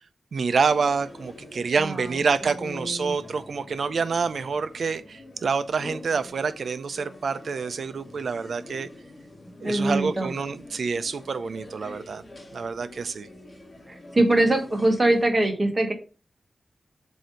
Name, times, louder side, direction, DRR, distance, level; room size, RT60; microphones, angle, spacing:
voice 1, 0.3-8.9 9.6-12.2 12.5-13.3, right 5 dB, 70° right, 0.5 m, -27 dB
sound 1, 0.6-15.3, left 1 dB, 35° left, 1.2 m, -45 dB
voice 2, 1.8-3.1 9.6-10.3 13.9-15.9, right 2 dB, 25° right, 1.2 m, -23 dB
7.6 x 2.8 x 5.1 m
wide cardioid pair, 140°, 0 cm